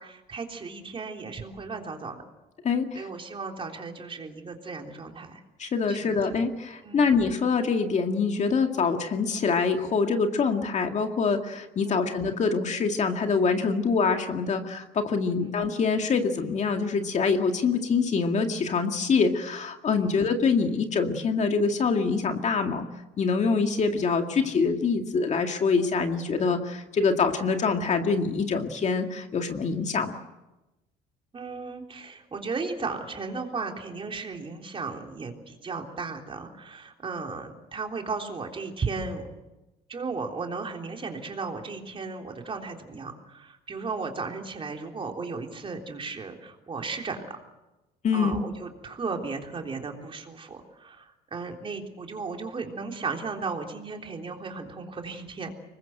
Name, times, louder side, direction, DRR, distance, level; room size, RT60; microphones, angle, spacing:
voice 1, 0.0-2.2 3.0-5.4 5.9-6.5 6.8-7.1 11.8-12.2 15.3-15.6 20.0-20.3 31.3-39.3 39.9-47.4 48.1-55.5, right 4 dB, 30° right, 2 dB, 3.6 m, -35 dB
voice 2, 2.6-3.1 5.6-22.9 23.2-30.2 48.0-48.4, left 5 dB, 45° left, 5 dB, 2.1 m, -25 dB
24.5 x 20.5 x 7.9 m, 1.0 s
cardioid pair, 110°, 17 cm